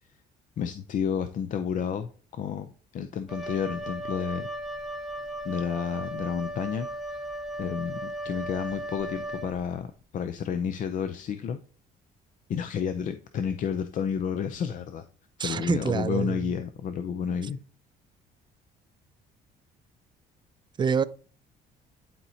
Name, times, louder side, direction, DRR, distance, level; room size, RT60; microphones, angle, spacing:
voice 1, 0.6-4.5 5.4-6.9 7.6-9.9 10.1-11.6 12.5-15.0 15.4-17.6, left 7 dB, 50° left, 0.5 m, -31 dB
Wind instrument woodwind instrument, 3.3-9.8, right 1 dB, ahead, 0.9 m, -36 dB
voice 2, 15.4-16.4 20.8-21.0, right 6 dB, 25° right, 0.4 m, -26 dB
11.0 x 4.3 x 2.8 m
cardioid pair, 110°, 17 cm